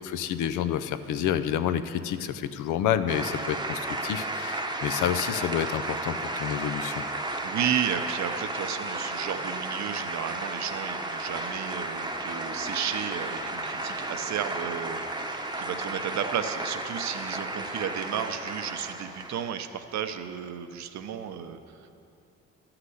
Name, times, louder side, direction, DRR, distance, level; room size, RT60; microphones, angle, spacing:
voice 1, 0.0-7.0, left 10 dB, 85° left, 11 dB, 0.6 m, -29 dB
sound 1, 3.1-19.6, right 2 dB, 15° right, 0.8 m, -33 dB
voice 2, 7.4-21.9, right 9 dB, 65° right, 9 dB, 0.8 m, -33 dB
11.5 x 5.9 x 7.9 m, 2.7 s
cardioid pair, 90°, 30 cm